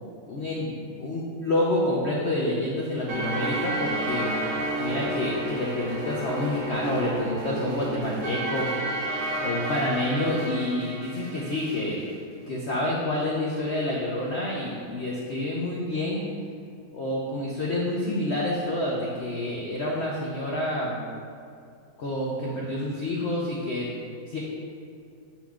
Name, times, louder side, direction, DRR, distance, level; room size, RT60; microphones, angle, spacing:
voice 1, 0.3-4.3 4.8-8.7 9.4-12.0 12.5-16.2 16.9-21.0 22.0-23.9 24.3-24.4, left 1 dB, 85° left, -3 dB, 0.5 m, -28 dB
sound 1, 3.1-11.9, right 1 dB, 55° right, 1.0 m, -31 dB
7.2 x 5.7 x 2.4 m, 2.4 s
omnidirectional pair, 2.0 m